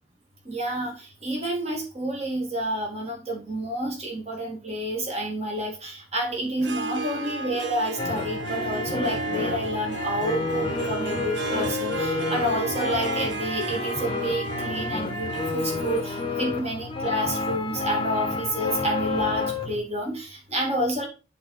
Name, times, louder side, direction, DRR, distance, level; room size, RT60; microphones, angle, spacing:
voice 1, 0.5-21.1, right 1 dB, 35° right, -1 dB, 2.0 m, -29 dB
Harp, 6.5-18.4, right 2 dB, 75° right, 0.7 m, -35 dB
sound 1, 8.0-19.8, left 3 dB, 25° left, 0.8 m, -29 dB
7.6 x 4.1 x 4.1 m, 0.33 s
head